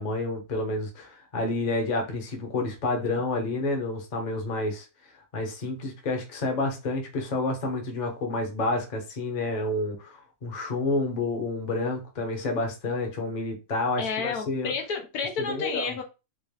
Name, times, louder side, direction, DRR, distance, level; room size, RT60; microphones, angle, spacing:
voice 1, 0.0-4.8 5.3-14.7 15.4-16.0, left 2 dB, 35° left, 0.8 m, -29 dB
voice 2, 14.0-16.0, left 5 dB, 90° left, 1.4 m, -31 dB
3.6 x 2.5 x 3.3 m
omnidirectional pair, 1.6 m